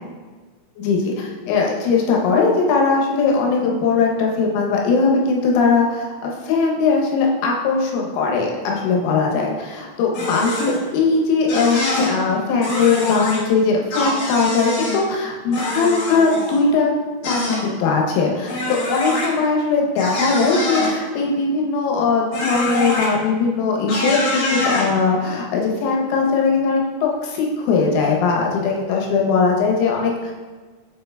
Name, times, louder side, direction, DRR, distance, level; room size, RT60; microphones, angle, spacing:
voice 1, 0.8-16.9 17.3-30.3, left 4 dB, 85° left, 0 dB, 3.5 m, -20 dB
sound 1, 10.1-10.8 11.5-12.1 12.6-13.4 13.9-15.0 15.5-16.6 17.2-17.6 18.5-19.3 20.0-20.9 22.3-23.0 23.9-24.9, left 2 dB, 65° left, 2.1 m, -24 dB
7.6 x 5.6 x 2.2 m, 1.4 s
omnidirectional pair, 5.9 m